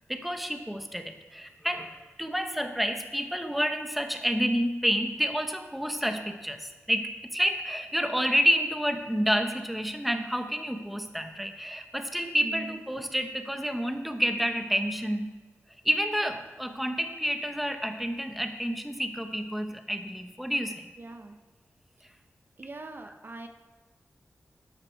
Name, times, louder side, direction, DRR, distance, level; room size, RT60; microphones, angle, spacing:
voice 1, 0.1-15.3 15.8-20.9, equal, ahead, 6 dB, 1.1 m, -29 dB
voice 2, 12.4-12.8 21.0-21.4 22.6-23.5, right 2 dB, 40° right, 6 dB, 0.9 m, -41 dB
12.5 x 10.5 x 4.6 m, 1.3 s
wide cardioid pair, 110°, 5 cm